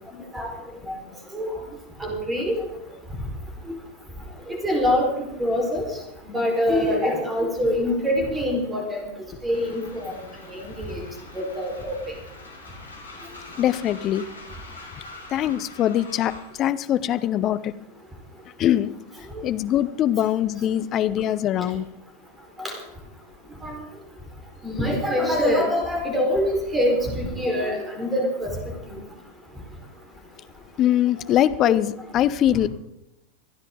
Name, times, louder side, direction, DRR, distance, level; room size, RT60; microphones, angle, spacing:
voice 1, 2.0-2.5 4.5-5.1 5.4-5.9 6.3-9.1 9.4-10.2 10.5-11.0 11.3-12.1 19.3-19.4 22.6-22.8 23.6-23.8 24.6-28.5 28.9-29.0 31.7-31.8, left 1 dB, 10° right, 1 dB, 4.6 m, -24 dB
Train, 9.5-16.6, left 2 dB, 75° left, 2.9 m, -44 dB
voice 2, 13.6-14.2 15.3-17.7 18.6-19.0 19.4-21.9 30.8-32.7, left 11 dB, 35° left, 14 dB, 0.7 m, -22 dB
25.0 x 10.0 x 3.9 m, 0.85 s
figure-of-eight pair, 90°, 0 cm